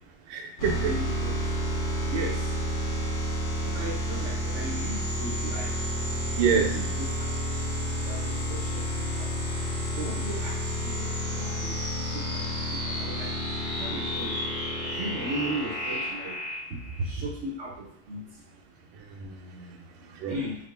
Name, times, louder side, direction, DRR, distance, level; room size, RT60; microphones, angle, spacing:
voice 1, 0.3-0.9 6.3-6.7 9.9-10.0 18.9-19.8 20.1-20.3, right 6 dB, 90° right, 3 dB, 1.5 m, -28 dB
sound 1, 0.6-17.1, equal, 75° left, 2.5 m, -30 dB
voice 2, 0.8-1.4 2.1-2.5 3.6-5.7 6.5-7.3 8.1-9.3 10.0-11.8 12.1-12.5 12.8-13.3 13.7-14.3 14.8-16.4 16.7-18.2 20.3-20.6, right 1 dB, 60° right, -2 dB, 0.7 m, -36 dB
5.5 x 2.1 x 3.3 m, 0.69 s
omnidirectional pair, 2.1 m